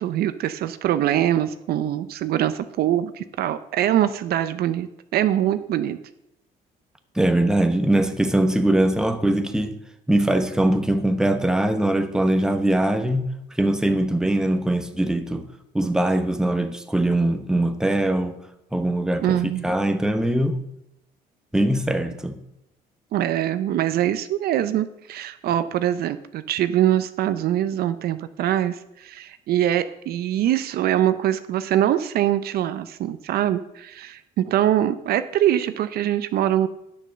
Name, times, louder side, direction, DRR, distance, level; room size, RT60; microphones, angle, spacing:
voice 1, 0.0-6.0 19.2-19.6 23.1-36.7, right 11 dB, 65° right, 0.6 m, -23 dB
voice 2, 7.1-9.8 10.1-13.3 13.5-15.5 15.7-18.4 18.7-20.6 21.5-22.4, right 1 dB, 5° right, 1.0 m, -21 dB
10.0 x 6.7 x 6.3 m
cardioid pair, 110°, 17 cm